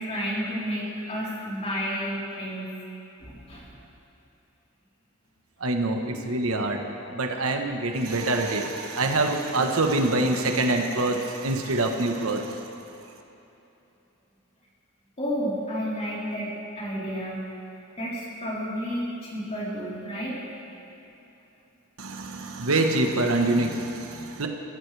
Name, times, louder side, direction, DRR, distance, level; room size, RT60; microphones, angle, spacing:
voice 1, 0.0-2.8 3.2-3.7 15.2-17.4 18.0-20.4, equal, 30° left, -7 dB, 3.9 m, -31 dB
voice 2, 5.6-6.8 7.1-12.7 22.0-24.5, right 2 dB, 80° right, 3 dB, 1.2 m, -25 dB
23.0 x 14.0 x 3.4 m, 2.9 s
head